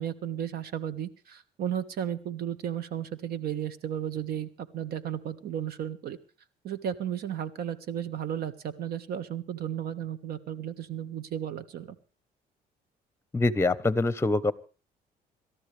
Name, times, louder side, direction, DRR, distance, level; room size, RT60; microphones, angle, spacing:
voice 1, 0.0-6.2 6.6-11.9, right 9 dB, 65° right, 12 dB, 1.6 m, -34 dB
voice 2, 13.3-14.5, left 2 dB, 15° left, 16 dB, 1.1 m, -24 dB
26.5 x 13.0 x 3.4 m, 0.37 s
cardioid pair, 110°, 17 cm